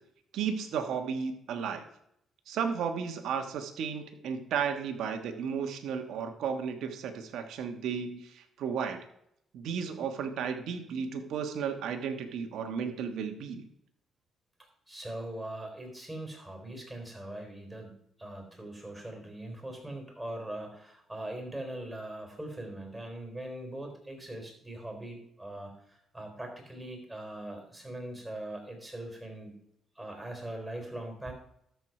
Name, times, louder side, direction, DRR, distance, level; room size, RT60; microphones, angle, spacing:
voice 1, 0.3-1.8 2.5-9.0 9.5-13.6, right 6 dB, 80° right, 6 dB, 1.3 m, -34 dB
voice 2, 14.9-17.9 18.2-29.6 30.0-31.3, right 1 dB, 10° right, 2 dB, 4.0 m, -41 dB
13.0 x 4.7 x 5.9 m, 0.74 s
cardioid pair, 90°, 0 cm